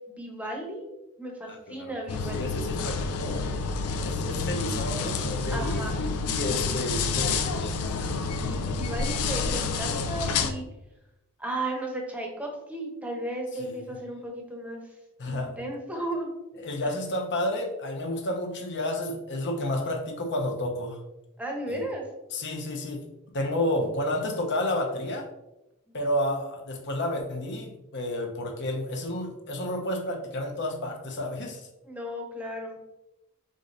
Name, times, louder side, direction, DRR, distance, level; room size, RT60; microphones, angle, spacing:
voice 1, 0.1-0.9 1.2-2.6 5.5-6.0 8.4-10.6 11.4-14.8 15.2-16.3 16.8-16.9 21.4-22.0 31.8-32.8, right 1 dB, 5° right, 0 dB, 0.9 m, -35 dB
voice 2, 1.5-1.9 2.3-3.5 4.0-7.8 13.6-13.7 15.2-15.6 16.6-21.0 21.7-21.8 22.3-23.0 23.3-25.3 25.9-31.7, left 1 dB, 55° left, 1 dB, 0.8 m, -31 dB
sound 1, 2.1-10.5, left 4 dB, 90° left, 0.5 m, -29 dB
5.0 x 3.8 x 2.6 m, 0.93 s
head